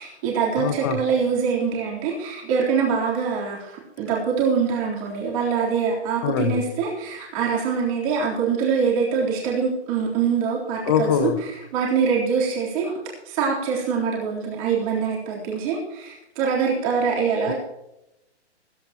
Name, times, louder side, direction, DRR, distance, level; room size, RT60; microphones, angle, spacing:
voice 1, 0.0-11.3 11.7-12.9 13.3-17.5, right 6 dB, 30° right, -3 dB, 3.6 m, -24 dB
voice 2, 0.6-1.0 6.2-6.6 10.9-11.4 17.4-17.5, left 9 dB, 20° left, 12 dB, 0.5 m, -23 dB
16.0 x 15.0 x 3.0 m, 0.87 s
hypercardioid pair, 155°, 34 cm